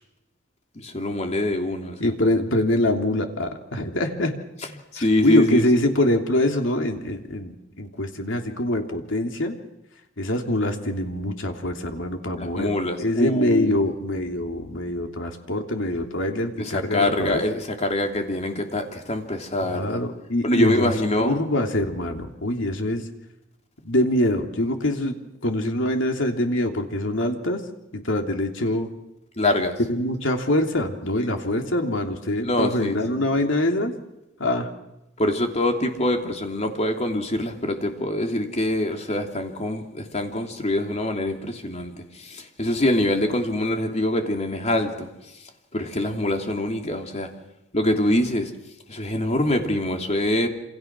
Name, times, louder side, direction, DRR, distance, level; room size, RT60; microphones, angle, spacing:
voice 1, 0.7-2.0 4.9-5.8 12.4-13.8 16.6-20.0 20.4-21.4 29.4-29.7 31.2-31.3 32.4-33.2 35.2-41.9 42.2-45.1 45.7-47.3 47.7-48.5 48.9-50.5, left 1 dB, 35° left, 3 dB, 3.1 m, -24 dB
voice 2, 2.0-4.3 5.0-9.6 10.2-12.7 13.0-17.4 19.6-20.9 21.2-23.1 23.8-25.2 25.4-27.6 27.9-28.9 29.9-33.9 34.4-34.7, left 1 dB, 65° left, 4 dB, 3.2 m, -24 dB
28.0 x 27.0 x 6.2 m, 0.92 s
head